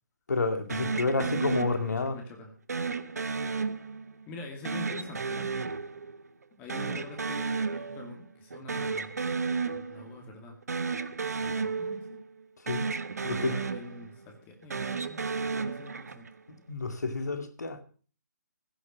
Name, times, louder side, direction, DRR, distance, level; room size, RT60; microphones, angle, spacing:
voice 1, 0.3-2.2 12.7-12.9 13.3-13.6 16.5-17.8, left 3 dB, 70° left, 2.2 m, -30 dB
sound 1, 0.7-2.2 2.7-4.2 4.6-6.4 6.7-8.2 8.5-10.2 10.6-12.4 12.7-14.2 14.6-16.4, right 5 dB, 65° right, 1.1 m, -33 dB
voice 2, 0.9-2.5 4.3-5.5 6.6-9.1 9.7-10.6 11.4-12.2 13.2-16.3, left 2 dB, 15° left, 2.2 m, -45 dB
15.5 x 6.7 x 7.1 m
figure-of-eight pair, 145°, 10 cm